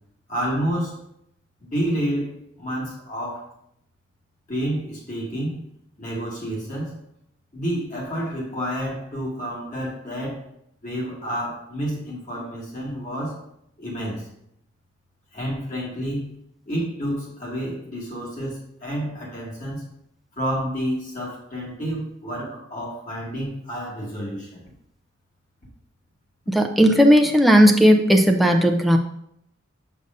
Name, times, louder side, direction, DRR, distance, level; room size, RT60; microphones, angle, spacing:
voice 1, 0.3-1.0 1.6-3.5 4.5-5.6 6.0-7.0 7.5-10.4 10.8-13.4 13.8-14.3 15.3-16.3 16.7-19.9 20.4-24.6, equal, 40° left, -4 dB, 2.2 m, -29 dB
voice 2, 26.5-29.0, equal, ahead, 2 dB, 0.5 m, -15 dB
6.6 x 6.6 x 2.6 m, 0.74 s
head